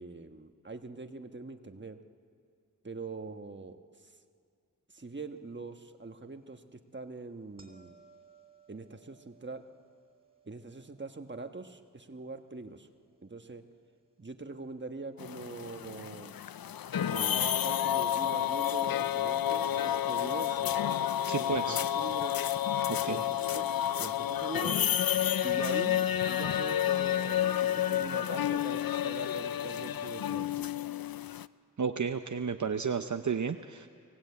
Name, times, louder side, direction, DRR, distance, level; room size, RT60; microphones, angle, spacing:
voice 1, 0.0-2.0 2.8-4.1 4.9-7.9 8.7-9.6 10.5-12.9 13.2-13.6 14.2-16.3 17.0-20.8 21.4-22.4 23.0-23.7 24.0-24.8 25.4-30.7, right 3 dB, 30° right, 7 dB, 1.3 m, -43 dB
sound 1, 7.6-14.6 19.8-20.0, right 5 dB, 15° right, 3.4 m, -64 dB
sound 2, 15.2-31.5, left 10 dB, 90° left, 0.5 m, -30 dB
voice 2, 21.3-21.8 22.9-23.2 31.8-33.9, right 6 dB, 55° right, 7 dB, 0.8 m, -32 dB
26.0 x 17.5 x 8.5 m, 2.3 s
wide cardioid pair, 60°, 34 cm